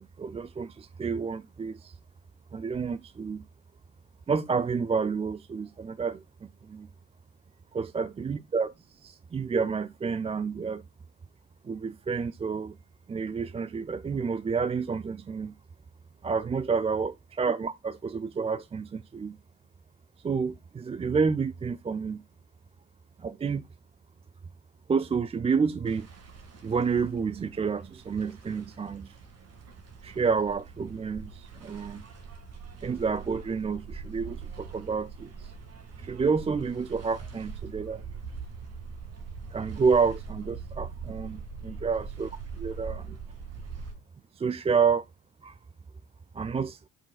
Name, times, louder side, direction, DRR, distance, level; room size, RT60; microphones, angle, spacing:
voice 1, 0.0-1.9 2.5-3.4 4.3-6.2 6.7-6.9 7.7-8.7 9.0-10.8 11.6-12.8 13.1-15.5 16.2-19.4 20.2-22.2 23.2-23.6 24.9-26.1 26.6-29.1 30.0-32.0 32.8-35.5 36.0-38.0 39.5-42.3 42.6-43.2 44.4-45.0 45.4-45.5 46.3-46.8, right 5 dB, 15° right, 0.4 m, -29 dB
sound 1, 25.9-43.9, right 5 dB, 45° right, 2.3 m, -43 dB
13.5 x 5.4 x 2.3 m
hypercardioid pair, 60°, 35 cm